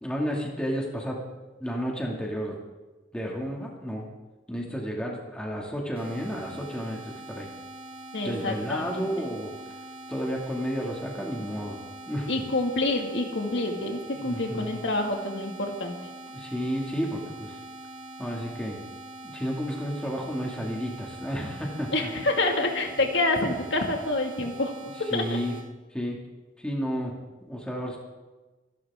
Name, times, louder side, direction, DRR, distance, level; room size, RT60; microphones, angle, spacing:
voice 1, 0.0-1.2 1.6-2.6 3.1-4.1 4.5-7.5 8.2-9.5 10.1-11.8 12.1-12.3 14.1-14.7 16.3-17.6 18.2-18.8 19.2-22.1 25.1-25.6 25.9-26.2 26.6-27.1 27.4-28.0, equal, 5° left, -2 dB, 2.4 m, -32 dB
sound 1, 5.9-25.7, right 1 dB, 35° right, 3.0 m, -43 dB
voice 2, 8.1-9.1 12.3-16.0 21.9-24.7 25.1-25.2, left 2 dB, 90° left, 2 dB, 2.2 m, -27 dB
25.5 x 11.5 x 3.7 m, 1.2 s
head